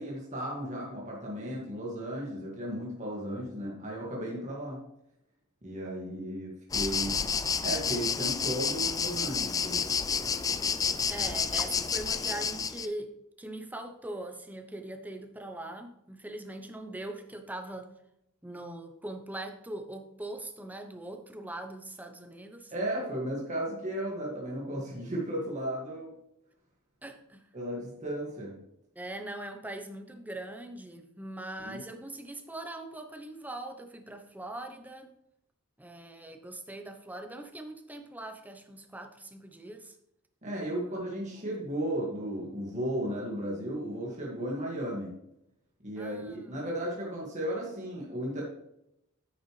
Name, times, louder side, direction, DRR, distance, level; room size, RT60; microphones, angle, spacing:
voice 1, 0.0-4.8 5.6-7.3 7.6-9.9 22.7-26.1 27.5-28.5 31.6-31.8 40.4-45.2 45.8-48.4, right 1 dB, 35° right, -3 dB, 2.1 m, -35 dB
sound 1, 6.7-12.9, left 6 dB, 15° left, 0.3 m, -30 dB
voice 2, 11.1-17.9 18.4-22.7 27.0-27.4 28.9-35.1 35.8-39.9 40.7-41.0 41.3-41.5 46.0-46.6, right 1 dB, 10° right, 5 dB, 0.9 m, -41 dB
10.0 x 6.6 x 3.3 m, 0.81 s
head